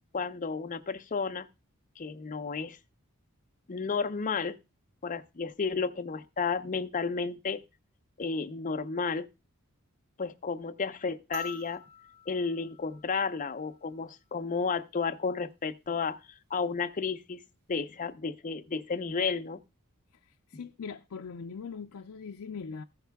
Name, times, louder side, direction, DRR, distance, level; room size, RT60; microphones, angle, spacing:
voice 1, 0.1-1.5 2.0-2.8 3.7-4.6 5.0-7.6 8.2-9.3 10.2-11.8 12.3-16.2 16.5-17.4 17.7-19.6, left 5 dB, 40° left, 0.6 m, -32 dB
sound 1, 11.3-13.9 15.5-15.6, left 1 dB, 50° right, 0.9 m, -45 dB
voice 2, 20.5-22.8, left 5 dB, 80° left, 0.5 m, -40 dB
14.5 x 5.5 x 3.4 m
head